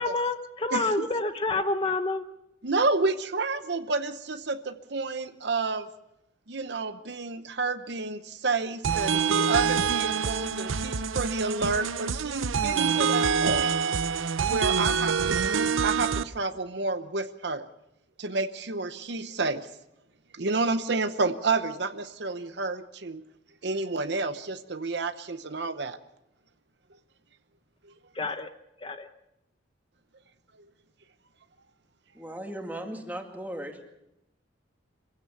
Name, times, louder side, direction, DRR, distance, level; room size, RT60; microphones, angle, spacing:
voice 1, 0.0-2.3 28.1-28.5 28.8-29.1, left 3 dB, 25° left, 8 dB, 0.8 m, -28 dB
voice 2, 2.6-5.9 6.5-13.8 14.5-17.6 18.2-19.7 20.3-23.2 23.6-26.0 27.8-27.9, right 3 dB, 60° right, 10 dB, 0.9 m, -30 dB
sound 1, 8.8-16.2, right 6 dB, 85° right, 0.7 m, -26 dB
voice 3, 32.1-33.8, right 1 dB, 10° right, 3 dB, 2.3 m, -37 dB
25.5 x 16.0 x 7.1 m, 0.86 s
head